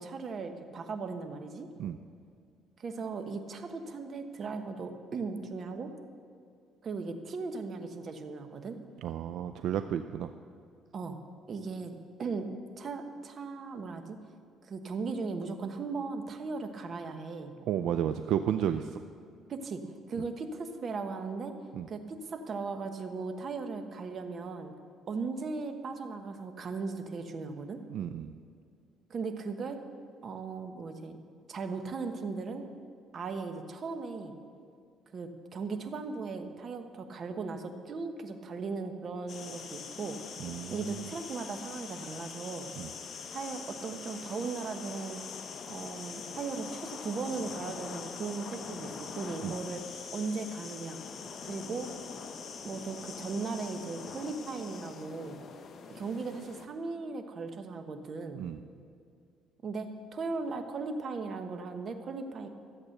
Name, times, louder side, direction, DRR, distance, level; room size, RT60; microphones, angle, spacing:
voice 1, 0.0-1.7 2.8-5.9 6.8-8.8 10.9-11.2 11.5-12.5 12.8-14.2 14.6-17.6 19.5-21.5 21.9-24.7 25.1-27.8 29.1-29.8 30.2-31.2 31.5-32.6 33.1-34.3 35.1-40.2 40.7-42.7 43.3-45.2 45.7-49.8 50.1-51.0 51.4-51.9 52.6-55.4 55.9-58.4 59.6-62.5, right 4 dB, 45° right, 7 dB, 1.1 m, -37 dB
voice 2, 9.0-10.3 17.7-19.0 21.7-21.9 27.9-28.3 40.4-41.0 42.8-42.9 49.4-49.5 58.3-58.6, right 9 dB, 70° right, 9 dB, 0.4 m, -32 dB
sound 1, 39.3-56.7, left 6 dB, 45° left, 0.9 m, -43 dB
13.5 x 8.2 x 6.7 m, 2.3 s
cardioid pair, 105°, 0 cm